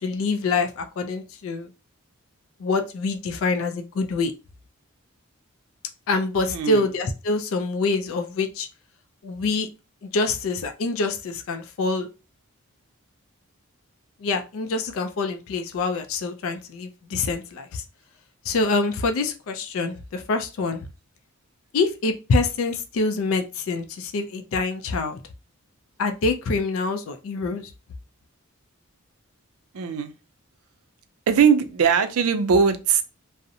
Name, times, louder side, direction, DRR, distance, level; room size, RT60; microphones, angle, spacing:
voice 1, 0.0-1.7 2.6-4.3 6.1-8.7 9.2-9.7 10.0-12.1 14.2-17.8 18.4-20.9 21.7-25.2 26.0-27.7, left 3 dB, 70° left, 7 dB, 0.4 m, -25 dB
voice 2, 6.5-6.9 29.7-30.1 31.3-33.0, right 6 dB, 80° right, 9 dB, 0.4 m, -20 dB
2.6 x 2.0 x 2.6 m, 0.30 s
head